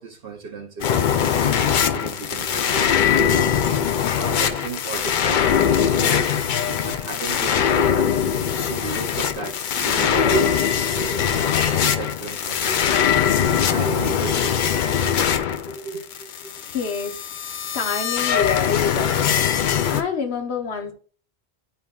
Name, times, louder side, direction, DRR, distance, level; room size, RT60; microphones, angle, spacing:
voice 1, 0.0-3.5 4.2-10.6 10.9-16.5, right 4 dB, 65° right, 0.8 m, -34 dB
sound 1, 0.8-20.0, left 8 dB, 60° left, 0.6 m, -21 dB
voice 2, 16.6-20.9, left 6 dB, 80° left, 1.2 m, -28 dB
10.5 x 4.2 x 2.3 m
omnidirectional pair, 1.1 m